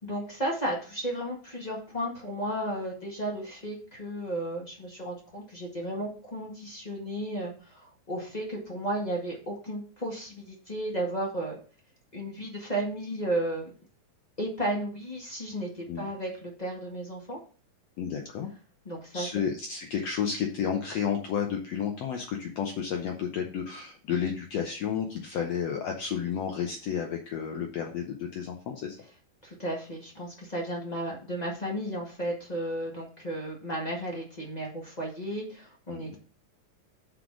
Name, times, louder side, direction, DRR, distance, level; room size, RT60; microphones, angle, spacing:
voice 1, 0.0-11.6 12.1-13.7 14.4-17.4 18.8-19.3 29.4-36.2, right 1 dB, 40° left, -2 dB, 0.5 m, -34 dB
voice 2, 18.0-18.5 19.1-29.0 35.9-36.2, left 7 dB, 75° left, 3 dB, 1.5 m, -31 dB
5.8 x 5.1 x 6.0 m, 0.39 s
omnidirectional pair, 4.0 m